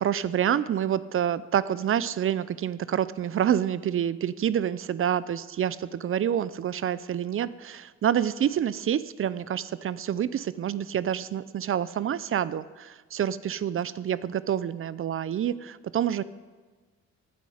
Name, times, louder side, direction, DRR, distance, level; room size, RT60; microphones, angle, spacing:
voice 1, 0.0-16.2, right 9 dB, 45° right, 17 dB, 0.5 m, -27 dB
15.0 x 9.5 x 5.0 m, 1.3 s
cardioid pair, 90°, 30 cm